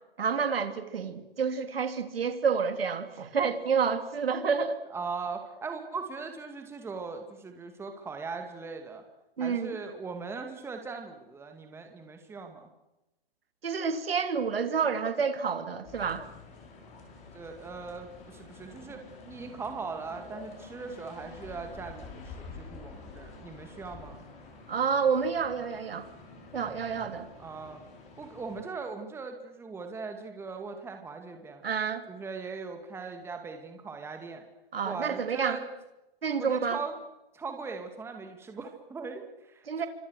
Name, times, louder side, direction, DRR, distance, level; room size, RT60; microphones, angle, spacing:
voice 1, 0.2-4.8 9.4-9.8 13.6-16.2 24.7-26.1 26.5-27.3 31.6-32.1 34.7-35.6 36.2-36.8 39.7-39.9, right 6 dB, 75° right, 8 dB, 3.4 m, -29 dB
voice 2, 4.9-9.0 9.4-12.7 17.3-24.2 27.4-27.8 28.2-31.6 32.1-34.4 34.8-35.6 36.4-37.0 37.3-39.9, right 4 dB, 10° right, 5 dB, 2.3 m, -39 dB
sound 1, 15.8-28.6, left 4 dB, 25° left, 5.6 m, -48 dB
26.5 x 25.5 x 6.5 m, 0.95 s
hypercardioid pair, 140°, 30 cm